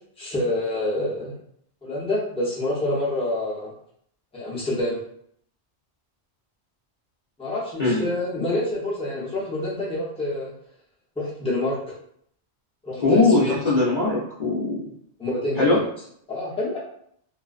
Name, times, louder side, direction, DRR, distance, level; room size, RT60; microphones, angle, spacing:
voice 1, 0.2-1.3 1.8-3.7 4.3-5.0 7.4-10.5 11.2-11.8 12.8-13.6 15.2-15.8 16.3-16.8, left 1 dB, 5° left, -6 dB, 0.6 m, -27 dB
voice 2, 13.0-14.9 15.6-15.8, left 3 dB, 45° left, -8 dB, 0.6 m, -20 dB
2.4 x 2.2 x 2.4 m, 0.67 s
omnidirectional pair, 1.1 m